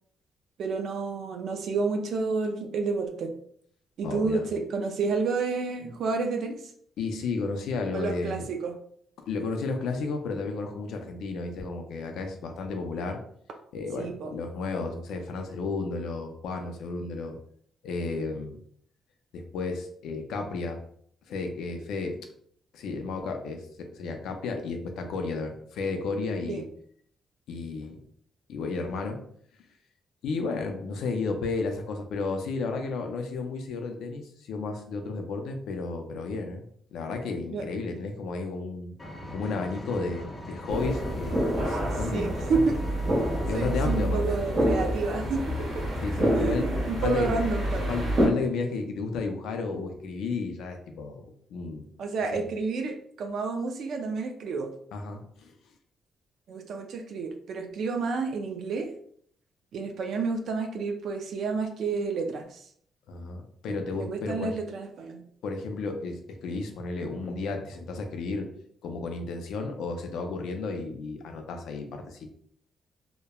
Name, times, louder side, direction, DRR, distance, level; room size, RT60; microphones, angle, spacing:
voice 1, 0.6-3.3 4.0-6.7 7.9-8.8 14.0-14.3 26.5-26.6 37.5-37.7 42.1-42.8 43.5-45.6 46.3-47.9 52.0-54.7 56.5-58.9 59.7-62.6 63.7-65.2, right 4 dB, 55° right, 5 dB, 0.4 m, -30 dB
voice 2, 4.0-4.5 7.0-8.4 9.2-13.2 13.7-17.4 17.8-18.6 19.3-20.8 21.3-22.2 22.7-26.6 27.5-28.0 28.5-29.2 30.2-36.6 36.9-38.9 39.3-42.7 43.5-44.4 46.0-46.7 47.0-47.4 47.9-51.8 52.3-52.4 54.9-55.5 63.1-64.6 65.4-68.5 68.8-72.3, left 4 dB, 80° left, 5 dB, 0.4 m, -33 dB
Engine, 39.0-44.0, equal, 10° left, 0.5 m, -40 dB
sound 1, 40.7-48.3, equal, 35° right, 1.0 m, -28 dB
2.9 x 2.1 x 2.2 m, 0.63 s
cardioid pair, 180°, 0 cm